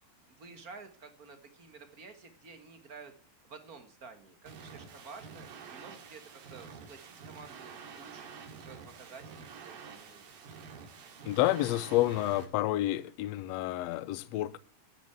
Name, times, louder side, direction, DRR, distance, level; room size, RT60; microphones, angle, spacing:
voice 1, 0.3-3.1 3.4-10.2, right 4 dB, 45° right, 1.2 m, -51 dB
sound 1, 4.5-12.5, right 6 dB, 80° right, 4.0 m, -48 dB
voice 2, 11.2-14.6, left 15 dB, 85° left, 1.4 m, -29 dB
12.5 x 9.2 x 8.1 m
omnidirectional pair, 4.0 m